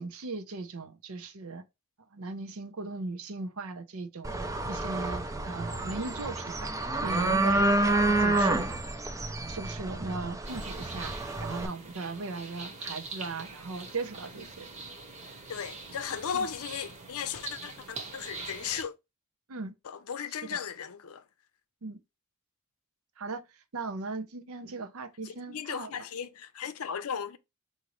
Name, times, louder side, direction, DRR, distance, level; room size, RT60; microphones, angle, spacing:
voice 1, 0.0-1.6 2.1-4.4 4.7-6.7 7.0-8.7 9.4-11.1 11.4-14.7 16.3-16.5 19.5-19.7 20.5-20.6 21.8-22.0 23.2-25.9, right 3 dB, 75° right, 0.7 m, -38 dB
sound 1, 4.2-11.7, right 2 dB, 15° right, 0.4 m, -29 dB
sound 2, 10.4-18.8, right 3 dB, 30° right, 1.0 m, -43 dB
voice 2, 15.5-18.9 19.8-21.2 25.2-27.4, left 7 dB, 75° left, 0.5 m, -36 dB
4.9 x 2.7 x 3.0 m
head